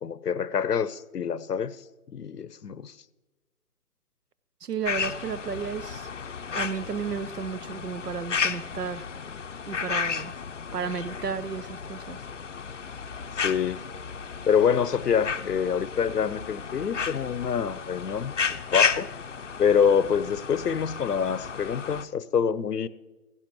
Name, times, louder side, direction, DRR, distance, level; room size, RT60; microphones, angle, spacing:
voice 1, 0.0-1.8 2.1-2.9 13.4-13.8 14.5-18.3 18.7-19.1 19.6-22.9, left 7 dB, 85° left, 0.8 m, -26 dB
voice 2, 4.6-6.1 6.5-9.1 9.7-10.3 10.7-12.2, right 6 dB, 85° right, 1.0 m, -33 dB
sound 1, 4.9-22.0, left 6 dB, 55° left, 0.6 m, -33 dB
16.5 x 16.0 x 3.1 m
hypercardioid pair, 170°, 46 cm